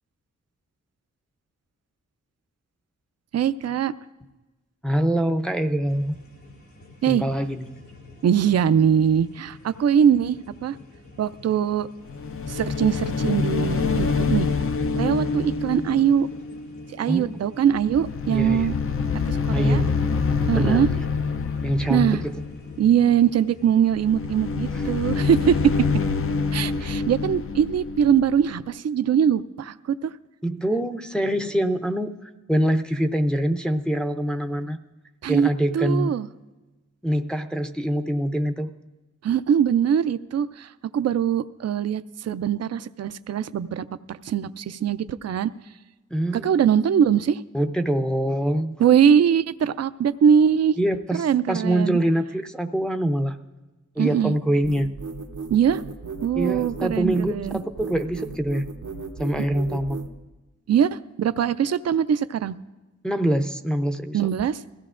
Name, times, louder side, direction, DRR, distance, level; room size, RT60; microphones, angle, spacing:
voice 1, 3.3-3.9 7.0-7.2 8.2-10.8 11.2-11.9 12.5-14.5 15.0-16.3 16.9-18.7 19.3-19.8 20.5-20.9 21.9-22.2 22.8-25.7 26.5-30.1 35.2-36.3 39.2-45.5 46.3-47.4 48.8-50.8 51.1-52.0 54.0-54.3 55.5-55.8 56.2-57.6 59.4-59.5 60.7-62.5 64.1-64.6, right 8 dB, 60° right, 14 dB, 0.4 m, -22 dB
voice 2, 4.8-6.2 7.1-7.7 16.9-17.4 18.3-18.7 19.5-20.0 20.5-21.0 21.6-22.3 24.7-24.8 26.8-26.9 30.4-34.8 35.3-36.1 37.0-38.7 46.1-46.6 47.5-48.8 50.8-53.4 54.0-54.9 56.4-58.7 59.2-60.0 63.0-64.2, right 1 dB, 5° left, 5 dB, 0.5 m, -24 dB
sound 1, 5.9-23.9, left 2 dB, 75° left, 2.4 m, -48 dB
sound 2, 12.1-17.4 17.7-22.9 23.9-28.7, left 5 dB, 50° left, 0.4 m, -26 dB
sound 3, 54.6-60.1, right 4 dB, 85° right, 0.9 m, -35 dB
21.0 x 15.0 x 2.5 m, 1.1 s
wide cardioid pair, 90°, 29 cm